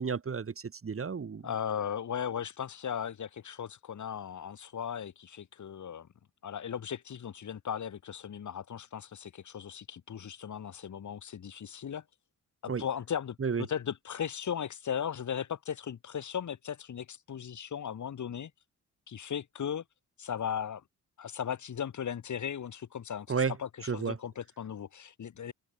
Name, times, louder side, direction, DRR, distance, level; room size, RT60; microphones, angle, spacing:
voice 1, 0.0-1.5 12.7-12.8 13.4-13.7 23.3-23.5 23.8-24.2, right 5 dB, 40° right, 3.5 m, -32 dB
voice 2, 1.4-6.1 6.4-12.0 12.6-13.4 13.7-18.5 19.1-19.8 20.2-20.8 21.2-25.5, left 8 dB, 65° left, 5.3 m, -37 dB
open air
cardioid pair, 80°, 32 cm